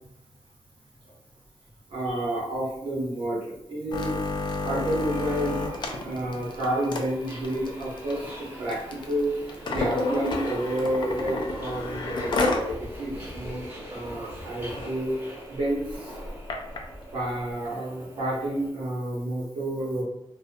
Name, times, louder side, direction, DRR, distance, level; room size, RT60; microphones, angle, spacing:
voice 1, 1.9-4.2 4.6-9.3 9.7-15.2 15.5-16.2 17.1-20.0, right 1 dB, 55° right, -6 dB, 0.7 m, -30 dB
sound 1, 3.9-12.7 13.1-13.2 13.5-13.8 14.3-14.4 14.6-14.9 15.6-16.8 17.5-17.6, left 2 dB, 50° left, 0.4 m, -30 dB
Subway metro underground, 5.1-18.7, equal, 20° right, 0.7 m, -43 dB
2.4 x 2.1 x 2.5 m, 0.83 s
wide cardioid pair, 135°, 10 cm